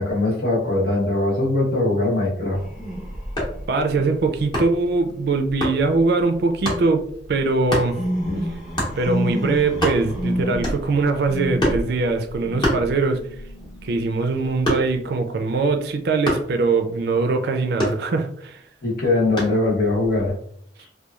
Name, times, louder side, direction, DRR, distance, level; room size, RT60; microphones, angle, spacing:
voice 1, 0.0-2.6 8.3-8.4 18.8-20.3, left 2 dB, 55° left, 1.0 m, -21 dB
sound 1, 2.5-6.6 7.1-15.0 19.8-20.3, equal, ahead, 0.5 m, -31 dB
sound 2, 3.4-3.7 4.5-4.9 5.6-5.8 6.7-6.9 7.7-7.9 8.8-9.0 9.4-9.5 9.7-10.3 10.6-11.0 11.6-11.9 12.6-13.4 13.7-15.1 16.2-16.6 17.8-18.5 19.4-19.7, equal, 25° left, 0.8 m, -25 dB
voice 2, 3.7-8.0 9.0-13.2 13.8-18.6, right 3 dB, 60° right, 0.4 m, -22 dB
2.9 x 2.2 x 2.3 m
head